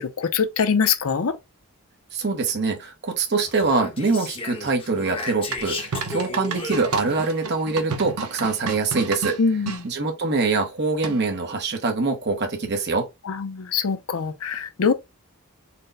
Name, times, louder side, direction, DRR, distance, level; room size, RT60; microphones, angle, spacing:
voice 1, 0.0-1.4 9.4-9.9 13.2-14.9, left 6 dB, 75° left, 0.6 m, -23 dB
voice 2, 2.1-9.4 9.8-13.1, right 3 dB, 50° right, 0.9 m, -24 dB
Speech, 3.4-7.3, left 3 dB, 25° left, 0.9 m, -34 dB
sound 1, 5.5-9.8 11.0-11.4, right 4 dB, 90° right, 0.7 m, -32 dB
4.3 x 2.1 x 3.8 m
head